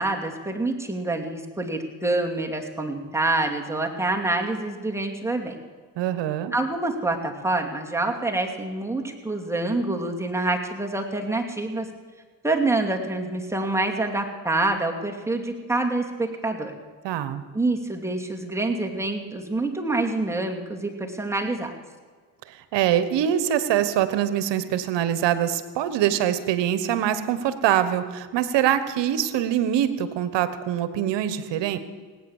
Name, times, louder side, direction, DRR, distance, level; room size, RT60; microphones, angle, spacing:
voice 1, 0.0-5.6 6.5-11.9 12.4-16.7 17.5-21.7, right 2 dB, 5° right, 1 dB, 2.5 m, -26 dB
voice 2, 6.0-6.5 17.0-17.4 22.5-31.8, right 10 dB, 70° right, 13 dB, 1.3 m, -24 dB
18.0 x 9.3 x 7.3 m, 1.5 s
supercardioid pair, 75°, 44 cm